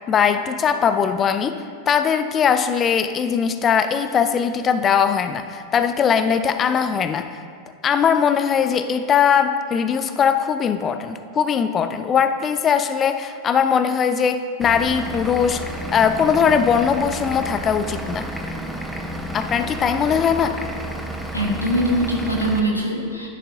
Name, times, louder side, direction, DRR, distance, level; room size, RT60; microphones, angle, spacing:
voice 1, 0.1-1.6 1.9-7.3 7.8-15.6 15.9-18.3 19.3-20.6, left 7 dB, 25° left, 9 dB, 0.4 m, -20 dB
Vehicle / Engine, 14.6-22.6, right 1 dB, ahead, 0.9 m, -31 dB
voice 2, 21.3-23.3, right 1 dB, 85° left, -1 dB, 1.3 m, -22 dB
11.0 x 10.5 x 2.7 m, 2.1 s
figure-of-eight pair, 90°, 0 cm